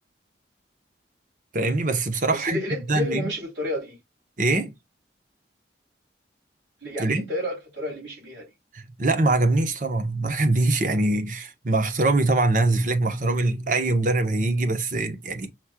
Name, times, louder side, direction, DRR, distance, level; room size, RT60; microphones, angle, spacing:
voice 1, 1.5-2.6 2.9-3.3 4.4-4.7 7.0-7.2 8.7-15.5, right 2 dB, 45° right, 0.9 m, -23 dB
voice 2, 2.3-4.0 6.8-8.5, left 1 dB, 85° right, 3.0 m, -31 dB
5.8 x 3.2 x 2.2 m
head